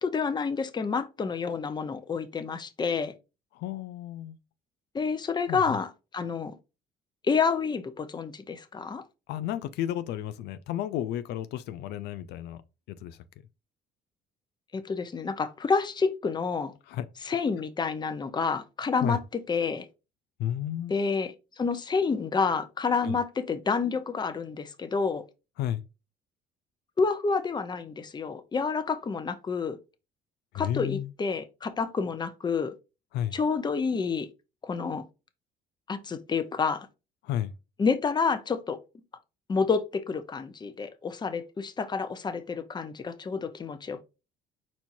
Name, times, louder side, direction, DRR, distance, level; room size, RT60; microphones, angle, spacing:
voice 1, 0.0-3.1 4.9-6.5 7.2-9.0 14.7-16.7 17.2-19.9 20.9-25.2 27.0-29.8 30.5-32.7 33.3-34.3 34.6-35.0 35.9-36.9 37.8-38.8 39.5-44.0, left 5 dB, 25° left, 0.8 m, -29 dB
voice 2, 3.5-4.4 5.5-5.8 9.3-12.6 12.9-13.2 16.9-17.1 19.0-19.2 20.4-20.9 23.0-23.2 25.6-25.8 30.5-31.1 33.1-33.4 37.2-37.5, left 11 dB, 80° left, 0.5 m, -32 dB
4.4 x 4.3 x 2.6 m
cardioid pair, 110°, 17 cm